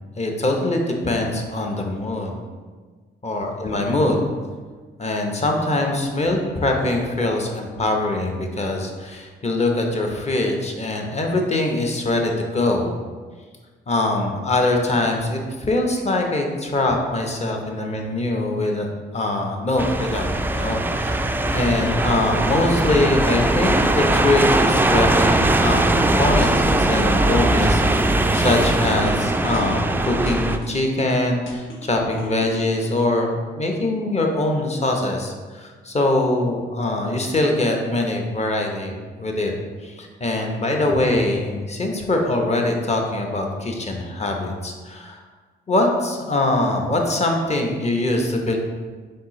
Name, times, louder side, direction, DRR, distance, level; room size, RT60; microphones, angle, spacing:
voice 1, 0.2-2.4 3.2-4.3 5.0-12.9 13.9-18.9 19.1-21.2 21.5-39.5 39.8-45.2 45.7-48.6, left 2 dB, 35° left, 2 dB, 0.8 m, -23 dB
sound 1, 19.8-30.6, right 2 dB, 10° right, 0.3 m, -20 dB
sound 2, 25.7-27.3 27.6-29.2 29.5-31.2 31.5-33.0, left 1 dB, 70° left, 0.8 m, -38 dB
4.3 x 3.8 x 3.1 m, 1.5 s
supercardioid pair, 55°, 21 cm